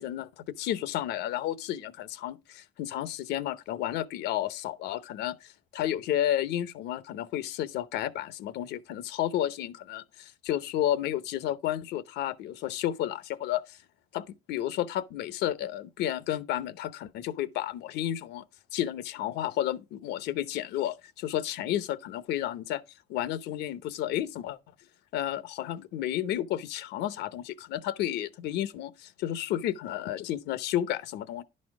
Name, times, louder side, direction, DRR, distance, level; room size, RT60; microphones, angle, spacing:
voice 1, 0.0-13.8 14.1-18.4 18.7-22.8 23.1-24.6 25.1-31.4, left 12 dB, 80° left, 0.8 m, -32 dB
11.0 x 4.2 x 4.7 m
cardioid pair, 110°, 17 cm